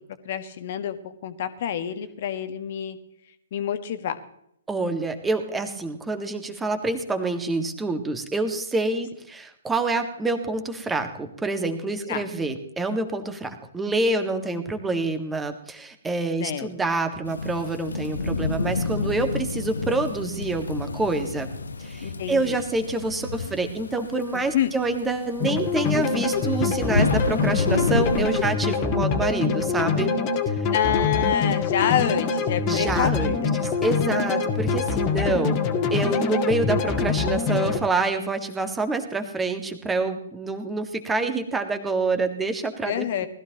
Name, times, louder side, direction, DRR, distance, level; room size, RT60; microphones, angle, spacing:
voice 1, 0.2-3.0 3.5-4.2 12.1-12.2 16.4-16.7 22.0-22.6 24.3-24.7 30.7-33.6 42.8-43.3, left 10 dB, 45° left, 11 dB, 1.6 m, -27 dB
voice 2, 4.7-21.5 21.8-30.1 30.5-30.6 32.7-35.6 35.9-43.3, right 3 dB, 10° right, 6 dB, 1.8 m, -27 dB
Thunderstorm / Rain, 17.3-28.5, left 3 dB, 70° left, 1.1 m, -30 dB
sound 1, 25.4-37.8, left 5 dB, 30° left, 2.0 m, -24 dB
20.0 x 14.5 x 3.0 m, 0.71 s
figure-of-eight pair, 120°, 0 cm